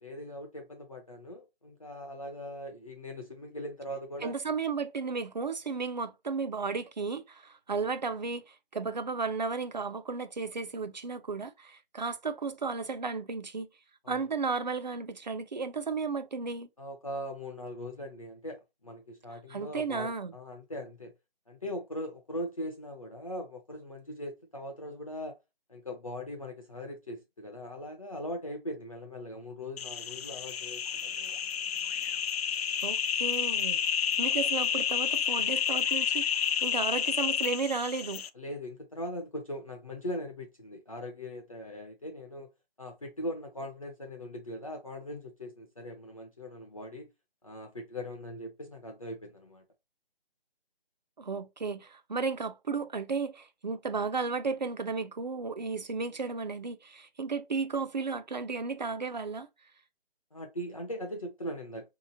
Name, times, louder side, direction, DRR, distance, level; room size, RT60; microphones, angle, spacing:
voice 1, 0.0-4.3 14.0-14.3 16.8-21.1 21.5-25.4 25.7-31.3 38.3-42.5 42.8-47.1 47.4-49.6 60.3-61.9, equal, 35° left, 0.5 m, -40 dB
voice 2, 4.2-13.7 14.1-16.7 19.5-20.3 32.8-38.2 51.2-59.5, right 4 dB, 50° right, 0.4 m, -34 dB
sound 1, 29.8-38.3, left 8 dB, 85° left, 0.4 m, -30 dB
3.5 x 2.8 x 2.6 m
figure-of-eight pair, 170°, 30 cm